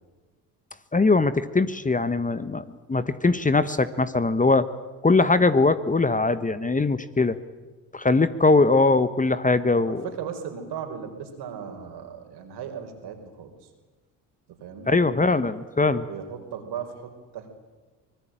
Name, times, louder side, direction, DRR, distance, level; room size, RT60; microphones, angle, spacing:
voice 1, 0.9-4.7 5.0-7.4 7.9-10.1 14.9-16.1, left 3 dB, 20° left, 13 dB, 1.3 m, -21 dB
voice 2, 9.8-13.7 14.6-15.5 16.1-17.5, right 7 dB, 65° right, 5 dB, 4.6 m, -37 dB
25.0 x 20.0 x 9.0 m, 1.3 s
hypercardioid pair, 60°, 43 cm